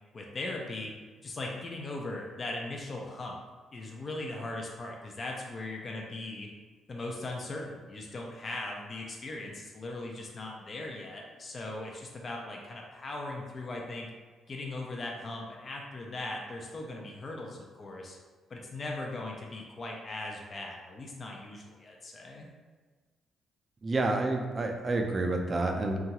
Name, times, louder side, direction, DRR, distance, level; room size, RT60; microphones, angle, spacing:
voice 1, 0.1-0.9 1.2-3.4 3.7-6.5 6.9-14.1 14.5-18.2 18.5-22.5, left 2 dB, 40° left, 0 dB, 0.4 m, -39 dB
voice 2, 23.8-26.0, right 2 dB, 35° right, 3 dB, 0.4 m, -29 dB
2.8 x 2.3 x 2.8 m, 1.4 s
cardioid pair, 90°, 0 cm